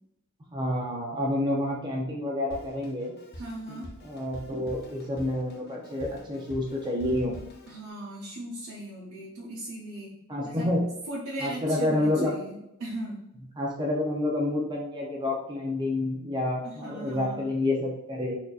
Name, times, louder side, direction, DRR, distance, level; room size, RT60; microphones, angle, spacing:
voice 1, 0.5-3.1 4.0-7.4 10.3-10.9 11.4-12.4 13.6-18.4, left 1 dB, 20° right, -2 dB, 0.5 m, -28 dB
Drum kit, 2.5-7.9, equal, 50° left, 0.6 m, -46 dB
voice 2, 3.3-3.9 7.7-10.1 10.4-10.7 11.1-13.2 16.6-17.4, right 1 dB, 80° right, -6 dB, 0.9 m, -38 dB
4.3 x 2.6 x 2.3 m, 0.84 s
head